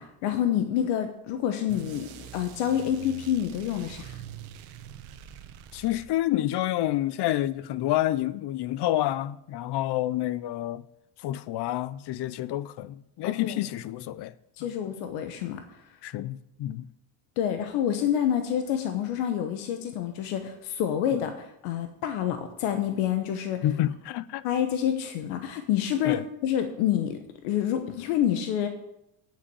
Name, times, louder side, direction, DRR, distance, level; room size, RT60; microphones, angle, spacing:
voice 1, 0.0-4.2 13.2-13.6 14.6-15.8 17.4-21.3 21.6-23.6 24.4-28.7, left 10 dB, 90° left, 1.2 m, -28 dB
sound 1, 1.7-6.5, right 10 dB, 85° right, 1.2 m, -44 dB
voice 2, 5.7-10.8 11.2-14.3 14.6-14.7 16.0-16.9 21.1-21.2 23.6-24.4 26.0-26.2, left 14 dB, 55° left, 0.7 m, -28 dB
8.4 x 7.4 x 8.6 m
cardioid pair, 115°, 48 cm